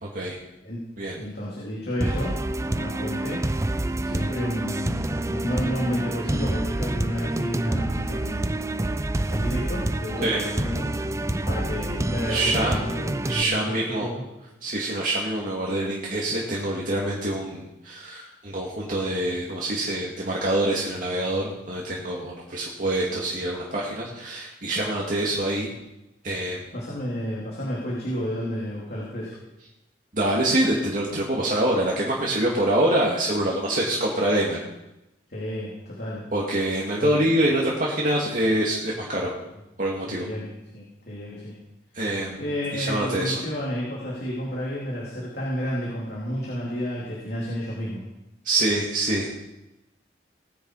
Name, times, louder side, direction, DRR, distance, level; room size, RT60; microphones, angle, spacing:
voice 1, 0.0-0.4 1.0-1.1 10.2-10.4 12.3-12.8 13.2-14.1 14.6-25.7 26.2-26.6 30.1-34.6 36.3-39.3 39.8-40.3 41.9-42.4 42.7-43.4 48.4-49.3, right 1 dB, 45° right, -3 dB, 2.4 m, -25 dB
voice 2, 1.1-3.4 4.0-8.6 9.3-14.2 26.7-29.4 35.3-36.2 37.0-37.3 38.9-39.1 40.1-41.6 42.4-48.0, equal, 55° left, -6 dB, 3.6 m, -31 dB
sound 1, 2.0-13.4, right 1 dB, 15° right, 0.4 m, -27 dB
19.5 x 10.0 x 4.9 m, 0.94 s
head